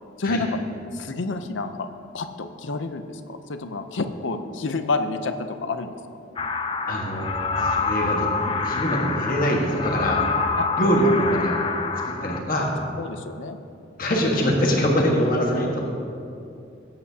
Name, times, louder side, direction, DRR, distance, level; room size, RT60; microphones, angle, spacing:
voice 1, 0.2-0.5 0.9-1.9 2.1-6.0 10.6-10.7 11.0-11.2 13.0-13.6, left 3 dB, 90° left, 8 dB, 0.7 m, -29 dB
sound 1, 6.4-12.4, left 4 dB, 25° left, 0.5 m, -26 dB
voice 2, 6.9-7.3 7.6-10.2 10.7-11.5 12.0-12.7 14.0-15.8, equal, 50° left, -2 dB, 1.5 m, -23 dB
18.0 x 8.8 x 2.8 m, 2.6 s
head